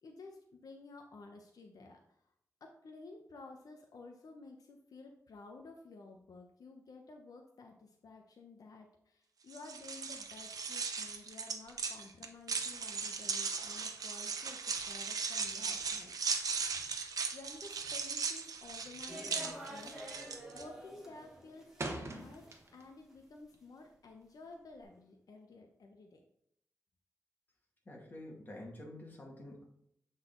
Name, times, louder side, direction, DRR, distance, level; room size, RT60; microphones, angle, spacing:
voice 1, 0.0-2.0 2.6-14.6 14.8-16.6 17.3-20.1 20.5-26.2, left 3 dB, 85° left, 3 dB, 0.8 m, -53 dB
sound 1, 9.5-20.6, right 5 dB, 85° right, 0.7 m, -38 dB
sound 2, 18.6-19.0 19.2-19.6 19.9-20.4 20.7-23.0 23.4-24.8, right 2 dB, 45° right, 1.0 m, -44 dB
sound 3, 19.1-21.9 22.2-22.8, equal, 5° right, 1.5 m, -49 dB
voice 2, 27.9-29.6, left 1 dB, 30° left, -2 dB, 2.0 m, -48 dB
8.0 x 4.0 x 3.8 m, 0.73 s
wide cardioid pair, 130°, 6 cm